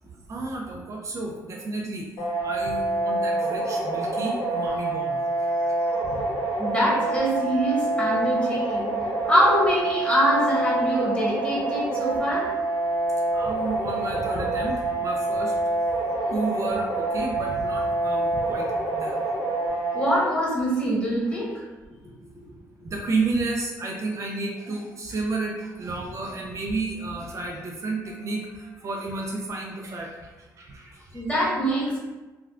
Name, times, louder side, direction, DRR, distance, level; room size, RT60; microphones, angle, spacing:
voice 1, 0.3-2.0 2.4-5.2 6.1-6.3 13.3-15.6 16.2-19.2 21.5-21.6 22.8-31.2, right 3 dB, 45° right, 0 dB, 0.4 m, -31 dB
sound 1, 2.2-20.2, right 2 dB, 75° left, 1.0 m, -26 dB
voice 2, 5.6-6.1 6.5-8.9 9.2-12.5 19.9-21.6 31.1-32.0, equal, 15° left, -6 dB, 1.3 m, -24 dB
3.4 x 2.3 x 2.3 m, 1.2 s
cardioid pair, 85°, 7 cm